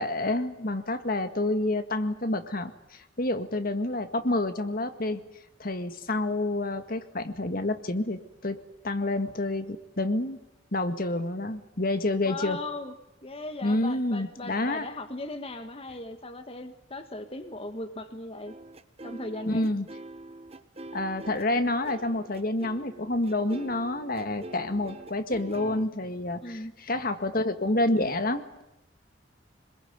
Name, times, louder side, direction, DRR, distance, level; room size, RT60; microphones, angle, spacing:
voice 1, 0.0-5.2 5.6-8.6 8.8-10.4 10.7-12.6 13.6-14.9 19.5-19.9 20.9-28.6, left 2 dB, 50° left, 8 dB, 1.9 m, -28 dB
voice 2, 12.2-12.9 13.2-18.5 19.0-19.7 26.4-26.7, left 2 dB, 30° left, 7 dB, 1.6 m, -38 dB
sound 1, 18.5-25.9, right 2 dB, 35° right, 1.2 m, -44 dB
26.5 x 21.5 x 9.6 m, 0.91 s
head